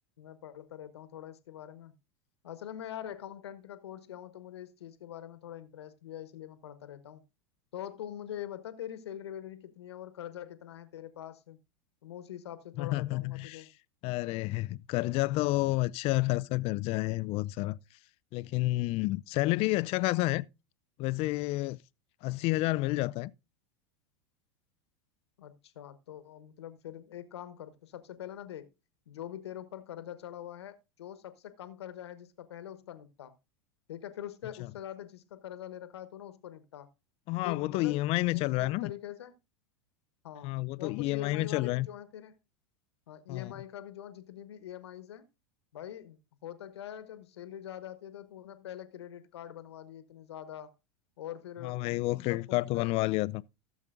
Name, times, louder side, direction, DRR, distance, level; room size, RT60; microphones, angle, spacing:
voice 1, 0.2-1.9 2.4-7.2 7.7-11.6 12.0-13.7 25.4-28.7 29.1-33.3 33.9-36.9 37.4-38.0 38.3-39.3 40.2-42.4 43.1-45.2 45.7-50.7 51.2-53.2, left 11 dB, 75° left, 1.3 m, -44 dB
voice 2, 12.8-13.6 14.0-17.8 18.3-20.4 21.0-21.8 22.2-23.3 34.6-34.7 37.3-38.9 40.4-41.9 43.3-43.5 51.6-53.4, left 20 dB, 45° left, 0.5 m, -30 dB
16.0 x 7.1 x 2.5 m
hypercardioid pair, 95°, 14 cm